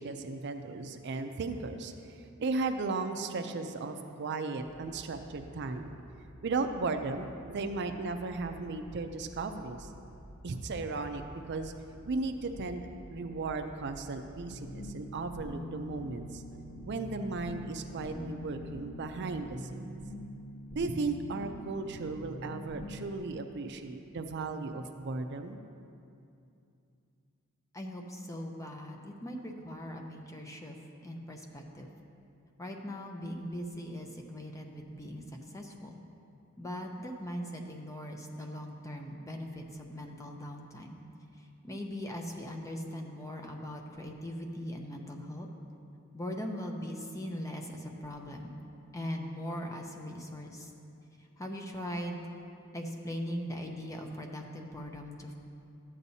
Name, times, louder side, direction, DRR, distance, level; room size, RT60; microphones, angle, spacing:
voice 1, 0.0-1.9 2.4-5.9 6.4-9.9 10.4-11.2 11.5-11.7 12.0-16.4 16.8-19.9 20.7-25.6, right 3 dB, 55° right, 7 dB, 0.5 m, -36 dB
sound 1, 4.6-19.3, equal, 70° left, 2.3 m, -53 dB
sound 2, 14.5-23.2, left 1 dB, 55° left, 0.8 m, -44 dB
voice 2, 27.7-30.8 31.0-31.9 32.6-35.2 35.5-36.0 36.6-41.0 41.6-45.5 46.1-48.6 48.9-50.7 51.4-52.4 52.7-55.3, equal, 15° left, 2 dB, 0.7 m, -40 dB
13.0 x 8.6 x 2.7 m, 2.6 s
head